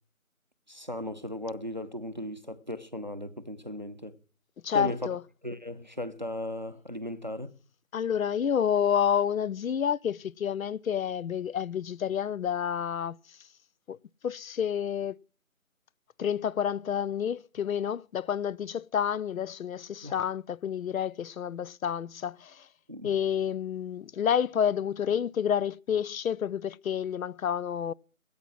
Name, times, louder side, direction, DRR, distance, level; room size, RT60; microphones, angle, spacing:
voice 1, 0.7-4.2 4.7-5.1 5.4-7.5 20.0-20.2 22.9-23.1, left 1 dB, 35° right, 0.6 m, -36 dB
voice 2, 4.6-5.2 7.9-13.2 13.9-14.0 14.2-15.2 16.2-22.7 23.0-27.9, left 8 dB, 70° left, 0.5 m, -29 dB
14.5 x 8.7 x 5.8 m
figure-of-eight pair, 170°, 42 cm